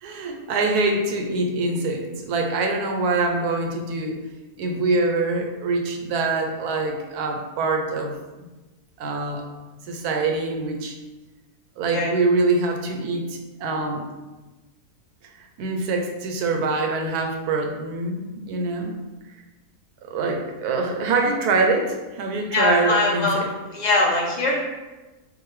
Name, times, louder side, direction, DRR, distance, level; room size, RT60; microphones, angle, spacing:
voice 1, 0.0-4.2 4.6-8.2 9.0-9.4 9.9-11.0 11.8-14.1 15.6-18.9 20.0-23.5, right 3 dB, 75° right, 3 dB, 1.2 m, -24 dB
voice 2, 22.5-23.4 23.7-24.6, left 2 dB, 45° left, -2 dB, 0.5 m, -21 dB
6.5 x 2.3 x 3.1 m, 1.2 s
omnidirectional pair, 1.7 m